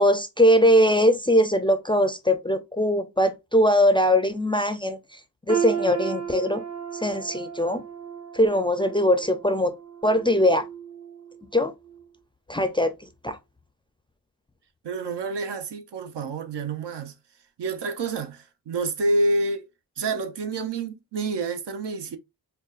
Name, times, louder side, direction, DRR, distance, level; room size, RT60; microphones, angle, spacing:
voice 1, 0.0-5.2 5.5-6.6 6.9-7.8 8.3-9.7 10.0-10.7 11.5-11.7 12.5-12.9 13.2-13.4, equal, 15° left, 0.4 m, -21 dB
sound 1, 5.5-11.4 11.8-12.1 12.8-12.9, right 8 dB, 40° right, 0.7 m, -34 dB
voice 2, 14.8-17.1 17.6-19.6 20.0-22.2, right 2 dB, 80° right, 0.7 m, -28 dB
5.0 x 2.2 x 2.4 m
wide cardioid pair, 75°, 41 cm